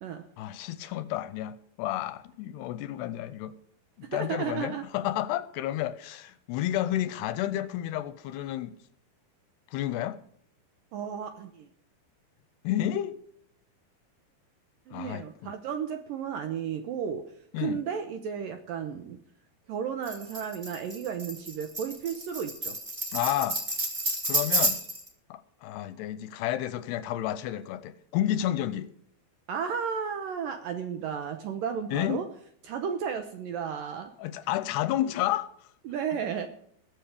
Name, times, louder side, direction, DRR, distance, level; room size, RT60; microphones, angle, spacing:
voice 1, 0.4-3.5 4.1-8.7 9.7-10.2 12.6-13.2 14.9-15.5 17.5-17.8 23.1-23.6 24.3-24.8 25.3-28.9 31.9-32.2 34.2-35.5, left 12 dB, 80° left, 2.6 m, -31 dB
voice 2, 4.0-4.9 10.9-11.7 14.9-17.3 17.6-19.2 19.7-22.8 29.5-32.3 32.6-34.1 35.8-36.5, right 7 dB, 75° right, 2.1 m, -33 dB
Tambourine, 20.0-25.1, right 1 dB, 30° right, 0.8 m, -30 dB
20.5 x 7.7 x 5.0 m
omnidirectional pair, 5.0 m